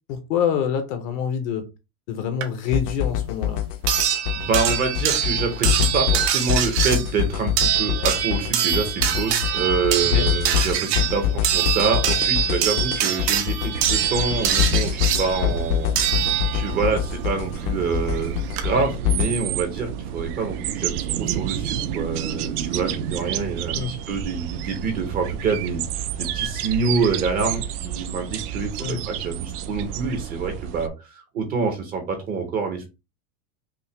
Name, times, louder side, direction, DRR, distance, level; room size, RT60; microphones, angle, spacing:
voice 1, 0.1-1.7 2.1-3.6 10.1-10.3 15.4-15.5 23.7-23.9 28.8-29.0, left 7 dB, 35° left, 0.5 m, -26 dB
sound 1, 2.4-2.5 3.9-16.9 18.1-18.2 18.6-18.7, right 9 dB, 90° right, 1.2 m, -24 dB
sound 2, 2.7-19.3, left 12 dB, 85° left, 0.9 m, -25 dB
voice 2, 4.3-32.9, right 5 dB, 20° right, 0.5 m, -26 dB
sound 3, 13.7-30.9, right 10 dB, 75° right, 0.7 m, -30 dB
5.6 x 2.1 x 3.1 m
supercardioid pair, 165°, 46 cm